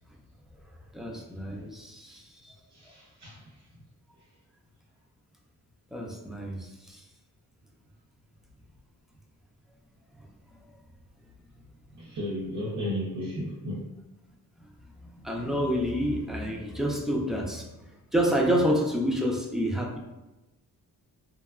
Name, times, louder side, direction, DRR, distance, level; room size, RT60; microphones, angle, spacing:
voice 1, 0.9-2.5 5.9-7.0 15.0-17.7 18.1-20.0, equal, ahead, -1 dB, 0.4 m, -28 dB
voice 2, 2.7-3.5 12.0-13.9, left 1 dB, 50° right, -5 dB, 0.6 m, -34 dB
2.8 x 2.2 x 2.3 m, 1.0 s
cardioid pair, 85°, 38 cm